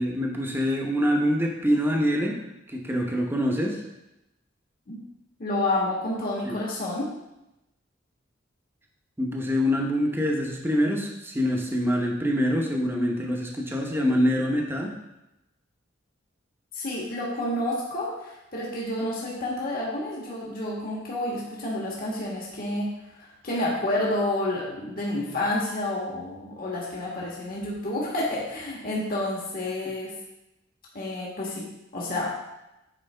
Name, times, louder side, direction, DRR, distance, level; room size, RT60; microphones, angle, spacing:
voice 1, 0.0-2.4 2.7-3.8 6.4-6.6 9.2-14.9, equal, 10° right, 0 dB, 0.9 m, -25 dB
voice 2, 5.4-7.1 16.7-22.9 23.2-30.1 30.9-31.6 31.9-32.3, left 1 dB, 50° left, -4 dB, 1.6 m, -29 dB
9.1 x 4.7 x 3.4 m, 0.92 s
head